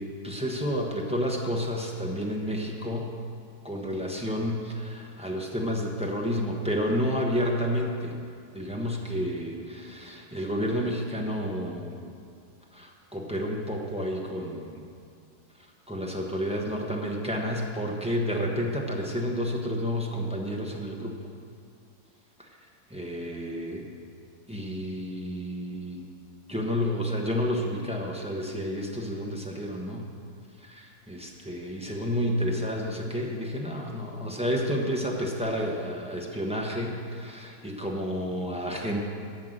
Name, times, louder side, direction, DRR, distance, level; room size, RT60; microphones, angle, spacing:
voice 1, 0.0-3.1 3.6-8.1 8.5-12.0 12.7-14.8 15.9-21.1 22.4-22.5 22.9-23.8 24.5-26.1 26.5-30.1 30.6-39.1, equal, 5° right, -2 dB, 0.7 m, -30 dB
13.0 x 5.7 x 7.9 m, 2.3 s
omnidirectional pair, 2.1 m